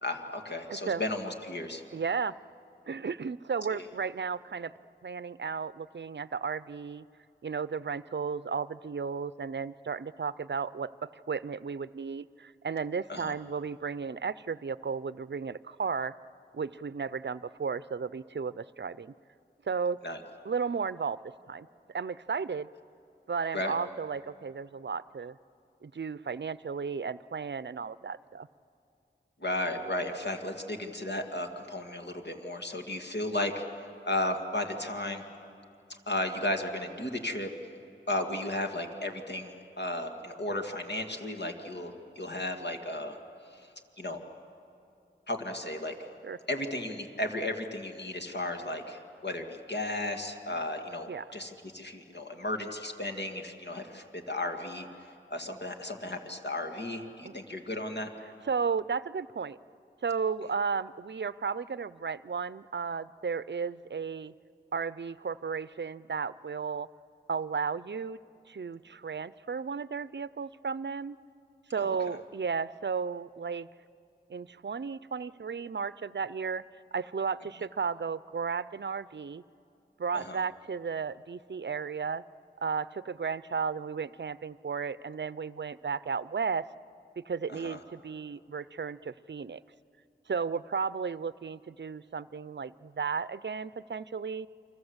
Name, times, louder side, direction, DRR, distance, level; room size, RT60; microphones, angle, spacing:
voice 1, 0.0-1.8 3.7-3.8 13.1-13.3 20.0-20.2 23.5-23.7 29.4-33.6 34.1-35.2 35.9-37.5 38.1-43.2 43.5-43.7 44.0-44.2 45.3-45.9 46.5-54.9 55.3-58.1 71.8-72.0 80.1-80.4 87.5-87.8, left 1 dB, 60° left, 4 dB, 2.2 m, -34 dB
voice 2, 0.7-1.0 1.9-2.3 2.9-4.7 5.0-7.0 7.4-16.1 16.5-19.1 19.7-20.0 20.5-21.2 21.5-22.7 23.3-25.4 25.8-28.5 46.2-46.4 51.1-51.2 57.2-57.3 58.5-59.6 60.0-64.3 64.7-66.9 67.3-68.2 68.5-71.2 71.7-73.7 74.3-76.6 76.9-79.4 80.0-82.2 82.6-86.6 87.2-89.6 90.3-94.5, right 5 dB, 65° right, 17 dB, 0.5 m, -34 dB
29.5 x 24.5 x 8.0 m, 2.6 s
wide cardioid pair, 40°, 20 cm